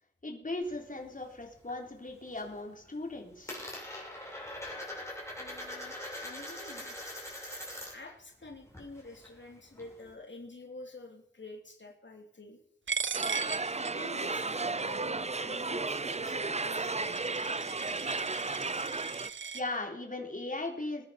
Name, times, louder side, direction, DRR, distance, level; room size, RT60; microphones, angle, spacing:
voice 1, 0.2-3.5 19.5-21.1, left 2 dB, 45° left, 1 dB, 3.6 m, -38 dB
Coin (dropping), 0.6-1.8 2.1-2.6 2.8-8.1 8.4-10.1, left 1 dB, 15° left, 6.8 m, -43 dB
voice 2, 5.4-5.9 6.2-7.0 7.5-12.6 13.4-17.2 17.4-17.8, left 2 dB, 75° left, 1 dB, 3.0 m, -49 dB
Coin (dropping) 2, 12.9-19.6, right 6 dB, 90° right, 0.6 m, -39 dB
sound 1, 13.1-19.3, right 3 dB, 35° right, 0.6 m, -34 dB
21.0 x 10.0 x 5.8 m, 0.71 s
wide cardioid pair, 65°, 19 cm